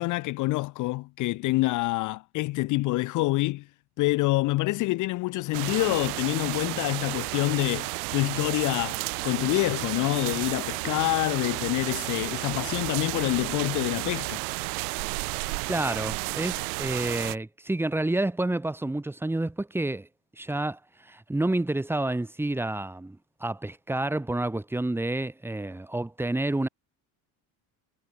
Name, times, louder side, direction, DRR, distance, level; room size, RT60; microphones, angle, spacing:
voice 1, 0.0-3.7 4.0-14.4, left 20 dB, 45° left, 1.0 m, -27 dB
sound 1, 5.5-17.4, right 31 dB, 80° right, 4.2 m, -32 dB
voice 2, 15.7-20.1 20.4-26.7, right 2 dB, 5° right, 5.6 m, -29 dB
cardioid pair, 170°, 44 cm